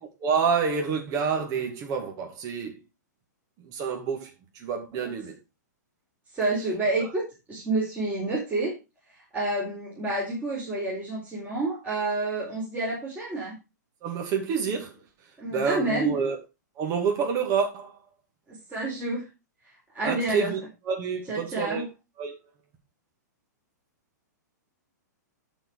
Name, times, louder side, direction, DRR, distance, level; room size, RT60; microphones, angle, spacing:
voice 1, 0.2-2.8 3.6-4.3 4.5-5.3 14.0-14.9 15.5-16.4 16.8-17.9 20.0-20.6 20.9-21.8 22.2-22.4, right 6 dB, 35° right, 2.4 m, -28 dB
voice 2, 6.3-7.2 7.5-8.8 9.1-13.5 15.4-16.2 18.5-19.3 19.9-20.5 21.3-21.9, right 2 dB, 15° right, 4.4 m, -29 dB
12.5 x 4.9 x 4.8 m
hypercardioid pair, 130°, 10 cm